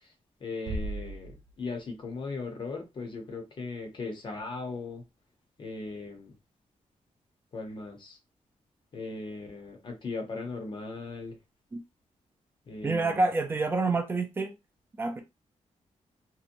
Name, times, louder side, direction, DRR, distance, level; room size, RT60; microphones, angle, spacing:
voice 1, 0.4-5.0 5.6-6.3 7.5-8.2 8.9-11.4 12.7-13.2, left 3 dB, 40° left, 0.7 m, -38 dB
Bass drum, 0.7-2.1, right 1 dB, 80° right, 0.4 m, -37 dB
voice 2, 12.8-14.5 15.0-15.2, right 3 dB, 20° right, 0.4 m, -27 dB
2.7 x 2.0 x 2.5 m
wide cardioid pair, 170°, 13 cm